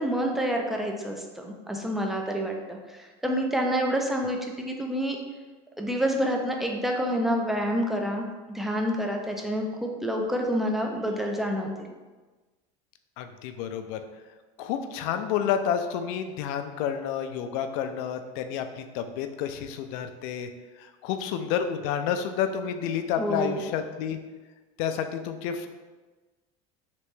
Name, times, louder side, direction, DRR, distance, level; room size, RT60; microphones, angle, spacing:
voice 1, 0.0-5.2 5.8-11.9 23.2-23.6, equal, ahead, 1 dB, 0.4 m, -28 dB
voice 2, 13.2-14.0 14.6-20.5 20.8-24.2 24.8-25.7, left 8 dB, 75° left, 8 dB, 0.4 m, -30 dB
3.2 x 2.9 x 3.1 m, 1.3 s
supercardioid pair, 130°, 17 cm